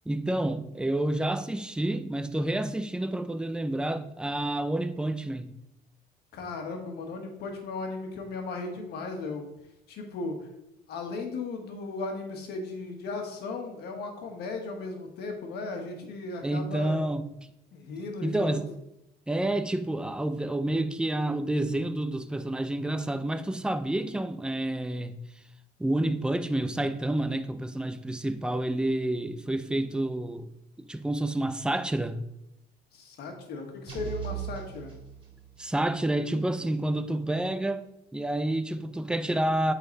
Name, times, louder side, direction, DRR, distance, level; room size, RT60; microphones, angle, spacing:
voice 1, 0.1-5.5 16.4-17.3 18.2-18.6 19.3-25.1 25.8-30.5 30.9-32.2 35.6-39.7, right 1 dB, 5° right, 0.5 m, -29 dB
voice 2, 6.3-9.4 9.9-10.4 10.9-17.0 17.7-18.6 32.9-34.9, left 3 dB, 75° left, 1.5 m, -36 dB
sound 1, 33.9-35.8, right 10 dB, 30° right, 2.4 m, -38 dB
8.5 x 4.1 x 4.0 m
cardioid pair, 110°, 17 cm